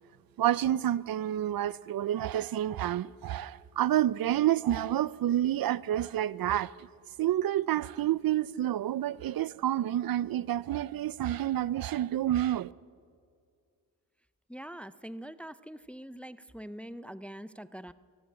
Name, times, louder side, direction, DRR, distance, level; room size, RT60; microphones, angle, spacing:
voice 1, 0.4-6.9 7.2-12.7, right 12 dB, 75° right, 0.5 m, -29 dB
voice 2, 14.5-17.9, equal, 5° left, 0.5 m, -43 dB
23.0 x 15.0 x 9.6 m
wide cardioid pair, 125°, 36 cm